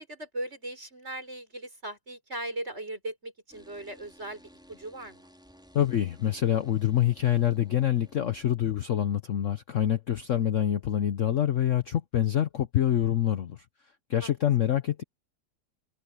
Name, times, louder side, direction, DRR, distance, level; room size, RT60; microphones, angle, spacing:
voice 1, 0.0-5.3 14.2-14.3, right 1 dB, 35° right, 6.3 m, -38 dB
sound 1, 3.5-8.5, equal, ahead, 5.2 m, -56 dB
voice 2, 5.7-13.6 14.1-15.0, left 11 dB, 55° left, 1.0 m, -26 dB
omnidirectional pair, 1.9 m